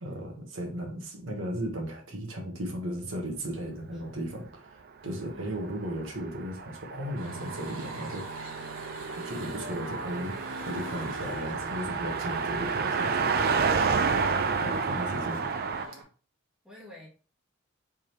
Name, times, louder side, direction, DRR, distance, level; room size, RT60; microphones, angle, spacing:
voice 1, 0.0-8.6 9.2-10.4 10.6-13.3 14.6-15.5, equal, 70° right, 1 dB, 1.2 m, -36 dB
voice 2, 5.3-5.8 16.6-17.1, left 1 dB, 5° right, -4 dB, 1.3 m, -51 dB
Car passing by, 5.7-15.9, right 5 dB, 50° right, 0.4 m, -30 dB
sound 1, 7.2-16.0, right 2 dB, 85° right, 1.3 m, -41 dB
4.7 x 3.7 x 3.0 m, 0.37 s
head